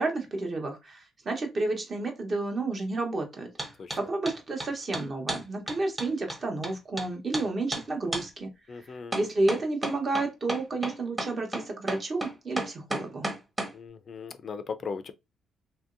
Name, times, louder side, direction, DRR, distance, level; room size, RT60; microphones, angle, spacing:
voice 1, 0.0-3.5 4.0-8.8 9.1-13.3, right 2 dB, 40° right, 0.9 m, -31 dB
sound 1, 3.6-4.0 4.3-7.1 7.3-7.5 7.7-7.8 8.1-8.3 9.1-13.7, right 1 dB, 15° right, 0.9 m, -32 dB
voice 2, 8.7-9.2 13.7-15.1, left 5 dB, 50° left, 0.4 m, -38 dB
2.9 x 2.7 x 2.5 m
cardioid pair, 90°, 0 cm